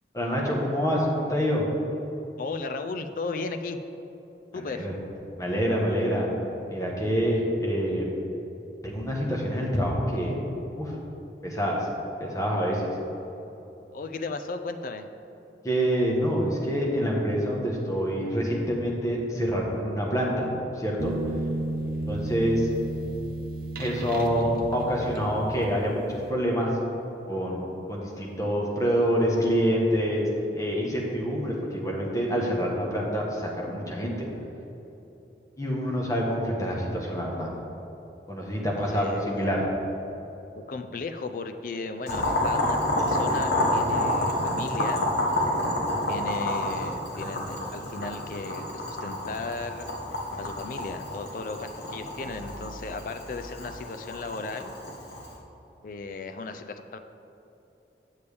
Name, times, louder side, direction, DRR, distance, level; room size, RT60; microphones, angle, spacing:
voice 1, 0.1-1.6 4.5-5.0 5.4-6.3 6.7-8.1 8.8-10.4 10.8-10.9 11.4-11.9 12.2-13.0 15.6-21.1 22.1-22.7 23.8-26.7 27.3-34.3 35.6-37.5 38.3-39.6, equal, 20° left, -3 dB, 1.1 m, -26 dB
voice 2, 2.4-3.8 4.5-4.9 13.9-15.0 38.7-39.5 40.5-45.1 46.1-49.8 50.4-54.7 55.8-57.0, left 3 dB, 50° left, 8 dB, 0.4 m, -36 dB
sound 1, 21.0-25.9, right 1 dB, 50° right, 0.6 m, -33 dB
Boiling, 42.1-55.3, left 1 dB, 70° left, 1.2 m, -29 dB
8.2 x 6.9 x 3.4 m, 3.0 s
head